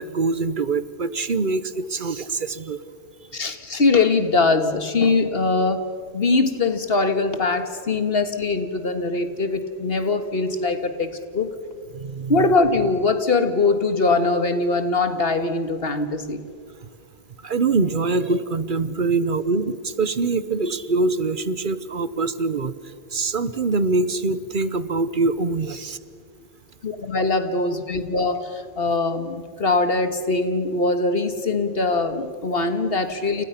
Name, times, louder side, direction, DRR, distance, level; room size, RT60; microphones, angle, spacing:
voice 1, 0.0-2.8 11.9-12.5 17.4-26.0, right 3 dB, 55° right, 14 dB, 1.0 m, -24 dB
voice 2, 3.3-11.5 12.3-16.5 26.8-33.4, left 3 dB, 65° left, 9 dB, 1.9 m, -22 dB
29.5 x 29.5 x 5.8 m, 2.1 s
omnidirectional pair, 1.1 m